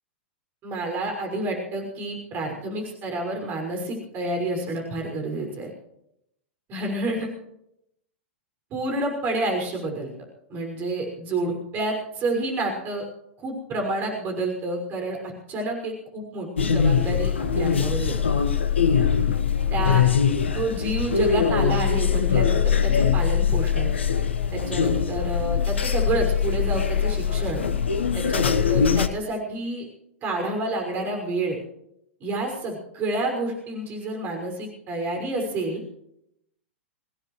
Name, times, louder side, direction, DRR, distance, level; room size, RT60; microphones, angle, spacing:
voice 1, 0.6-5.7 6.7-7.3 8.7-10.1 10.5-13.0 13.4-15.2 15.5-18.4 19.7-20.0 20.5-23.9 24.5-27.6 28.1-29.9 30.2-31.6 32.2-35.8, right 2 dB, 30° right, 2 dB, 5.8 m, -29 dB
sound 1, 16.6-29.1, left 7 dB, 70° left, 1.3 m, -22 dB
25.0 x 17.5 x 3.2 m, 0.77 s
figure-of-eight pair, 100°, 7 cm